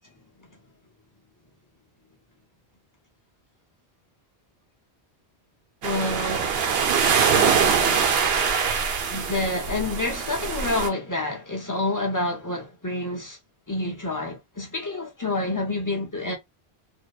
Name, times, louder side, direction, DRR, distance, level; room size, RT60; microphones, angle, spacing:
voice 1, 5.8-6.6 7.7-8.2 9.1-13.4 13.7-16.4, left 2 dB, 25° left, 0.5 m, -28 dB
sound 1, 5.8-10.9, right 6 dB, 70° right, 0.8 m, -23 dB
2.6 x 2.0 x 2.3 m
omnidirectional pair, 1.1 m